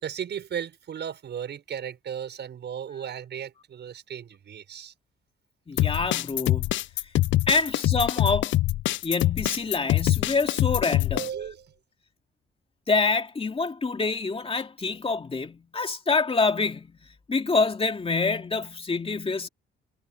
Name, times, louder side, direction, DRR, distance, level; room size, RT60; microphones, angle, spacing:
voice 1, 0.0-4.9 7.6-7.7 11.1-11.7, right 8 dB, 60° right, 6.0 m, -35 dB
voice 2, 5.7-6.7 7.5-8.5 9.0-11.3 12.9-17.0 17.3-19.5, left 4 dB, 30° left, 2.5 m, -26 dB
sound 1, 5.8-11.3, left 16 dB, 70° left, 0.5 m, -24 dB
cardioid pair, 90°, 20 cm